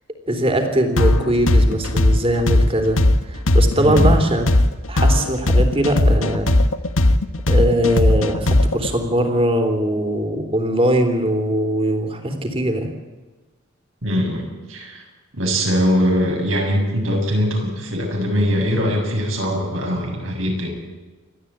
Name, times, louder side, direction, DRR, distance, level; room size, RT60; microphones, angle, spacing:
voice 1, 0.3-4.5 4.9-6.5 7.5-12.9, right 1 dB, 30° right, 5 dB, 3.3 m, -21 dB
sound 1, 1.0-8.9, left 1 dB, 85° left, 1.3 m, -16 dB
voice 2, 3.8-4.1 14.0-14.4 14.7-15.0 15.3-20.7, equal, 75° right, 1 dB, 6.9 m, -21 dB
29.0 x 13.0 x 8.8 m, 1.3 s
head